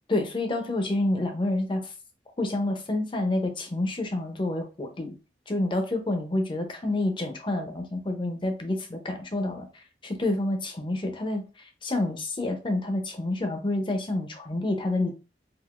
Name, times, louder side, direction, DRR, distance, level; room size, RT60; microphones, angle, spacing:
voice 1, 0.1-1.9 2.4-5.1 5.5-9.7 10.0-15.1, left 2 dB, 30° left, 0.6 m, -28 dB
3.6 x 2.5 x 2.4 m
head